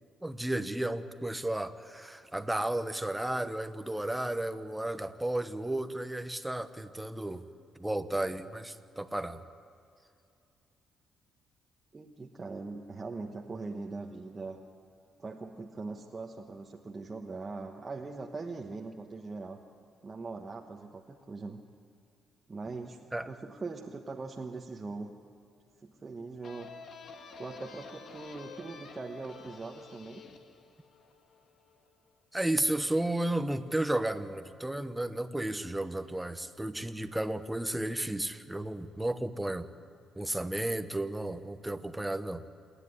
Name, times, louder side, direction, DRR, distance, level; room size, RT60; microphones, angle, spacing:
voice 1, 0.2-7.4 7.8-9.4 23.1-23.3 32.3-39.7 40.1-42.4, right 1 dB, 10° right, 10 dB, 1.0 m, -33 dB
voice 2, 11.9-14.6 15.2-19.6 20.0-21.6 22.5-25.1 25.8-26.7 27.4-30.2, right 3 dB, 30° right, 0 dB, 1.2 m, -41 dB
sound 1, 26.4-31.9, left 4 dB, 60° left, 1.7 m, -50 dB
28.0 x 10.0 x 9.9 m, 2.5 s
cardioid pair, 90°, 0 cm